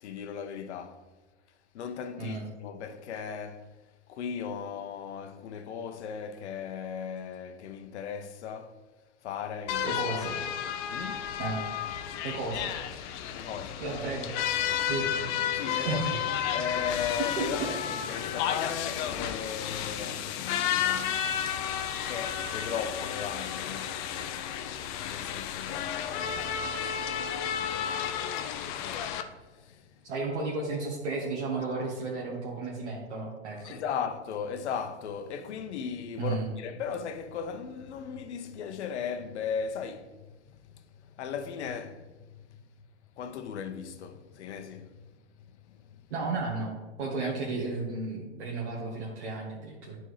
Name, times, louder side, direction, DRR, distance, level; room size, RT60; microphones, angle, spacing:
voice 1, 0.0-1.0 1.7-3.7 4.1-8.8 9.2-10.0 10.9-11.3 13.3-13.8 15.5-16.1 16.5-21.6 22.1-24.1 25.0-27.6 28.7-30.0 33.6-42.6 43.2-45.1 45.4-46.0 47.2-47.3, left 7 dB, 70° left, 0.8 m, -37 dB
sound 1, 9.7-29.2, left 9 dB, 45° left, 0.6 m, -32 dB
voice 2, 9.8-10.4 11.4-11.6 12.2-13.0 13.8-14.3 14.9-15.3 15.8-16.2 17.4-17.7 30.0-33.7 36.2-36.5 46.1-46.7 47.0-50.0, right 3 dB, 75° right, 1.6 m, -33 dB
10.5 x 4.5 x 3.2 m
hypercardioid pair, 115°, 35 cm